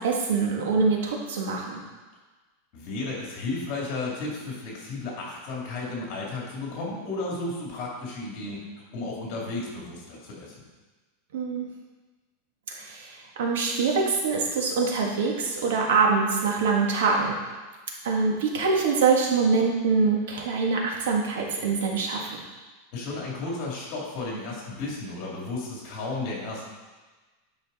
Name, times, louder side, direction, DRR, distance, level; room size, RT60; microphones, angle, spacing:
voice 1, 0.0-1.8 11.3-11.7 12.7-17.4 18.0-22.3, right 4 dB, 80° right, 0 dB, 1.7 m, -24 dB
voice 2, 2.7-8.6 8.9-10.5 22.9-26.6, left 2 dB, 40° left, -3 dB, 2.8 m, -33 dB
10.5 x 5.2 x 4.2 m, 1.3 s
supercardioid pair, 170°, 0 cm